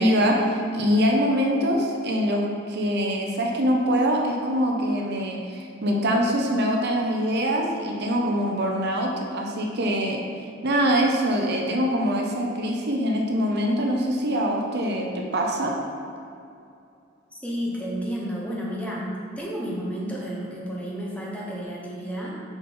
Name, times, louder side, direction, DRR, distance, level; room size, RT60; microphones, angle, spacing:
voice 1, 0.0-10.2 10.6-15.7, equal, 55° right, 1 dB, 0.8 m, -24 dB
voice 2, 17.3-19.1 19.4-22.3, equal, 5° left, -4 dB, 1.2 m, -31 dB
6.8 x 5.5 x 4.4 m, 2.6 s
head